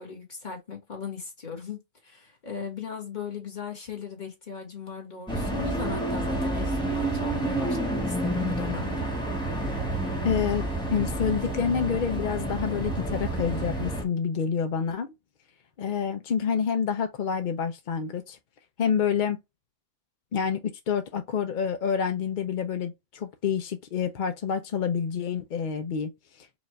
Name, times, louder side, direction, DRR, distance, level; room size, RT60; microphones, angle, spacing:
voice 1, 0.0-9.1, left 6 dB, 35° left, 1.6 m, -38 dB
sound 1, 5.3-14.0, right 1 dB, 5° left, 1.2 m, -29 dB
voice 2, 10.2-15.1 15.8-18.4 18.8-19.4 20.3-26.1 26.4-26.5, left 7 dB, 60° left, 0.5 m, -28 dB
5.0 x 2.5 x 3.1 m
omnidirectional pair, 1.4 m